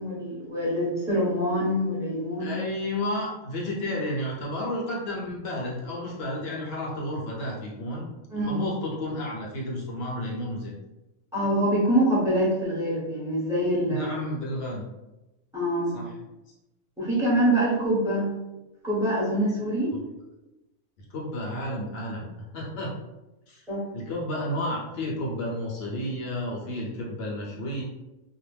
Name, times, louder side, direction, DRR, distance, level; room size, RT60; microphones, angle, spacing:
voice 1, 0.0-2.6 8.3-8.6 11.3-14.1 15.5-16.0 17.0-18.3 18.8-19.9 23.7-23.8, right 1 dB, 5° right, -8 dB, 0.8 m, -25 dB
voice 2, 2.4-8.1 8.3-10.7 13.9-14.8 15.9-16.1 21.0-23.0 23.5-23.7 23.9-27.8, left 1 dB, 55° left, -4 dB, 0.7 m, -32 dB
2.4 x 2.1 x 3.2 m, 1.0 s
omnidirectional pair, 1.5 m